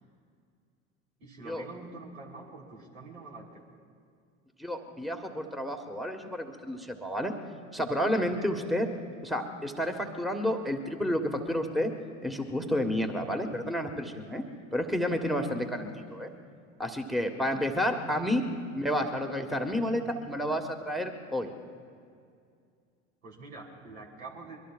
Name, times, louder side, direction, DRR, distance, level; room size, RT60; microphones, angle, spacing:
voice 1, 1.2-3.6 17.3-17.6 23.2-24.6, right 3 dB, 80° right, -2 dB, 3.8 m, -46 dB
voice 2, 4.6-7.3 7.7-8.9 9.2-11.9 12.2-14.4 14.7-16.3 16.8-18.4 18.7-21.5, equal, ahead, 5 dB, 1.5 m, -30 dB
25.0 x 23.0 x 2.5 m, 2.3 s
hypercardioid pair, 75°, 40 cm